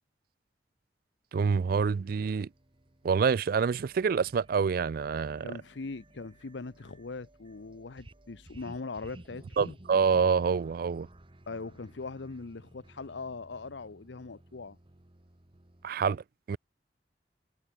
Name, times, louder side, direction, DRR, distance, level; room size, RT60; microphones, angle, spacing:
voice 1, 1.3-2.5 3.0-5.5 9.6-11.1 15.8-16.6, right 6 dB, 55° right, 0.4 m, -27 dB
sound 1, 1.4-15.9, right 1 dB, 30° right, 1.3 m, -55 dB
voice 2, 5.4-9.8 11.5-14.8, left 3 dB, 90° left, 0.8 m, -41 dB
head